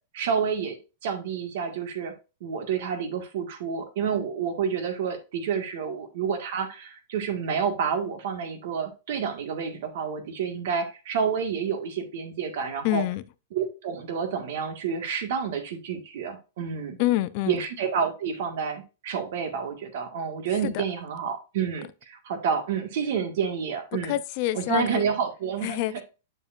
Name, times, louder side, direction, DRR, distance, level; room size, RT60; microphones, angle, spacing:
voice 1, 0.1-0.8 1.0-2.1 2.4-13.0 13.5-17.0 17.5-24.2 24.5-26.0, right 6 dB, 60° right, 1.8 m, -29 dB
voice 2, 12.8-13.2 17.0-17.6 20.6-20.8 23.9-25.1 25.6-26.0, left 15 dB, 45° left, 0.6 m, -27 dB
7.2 x 6.9 x 2.5 m
supercardioid pair, 150°, 0 cm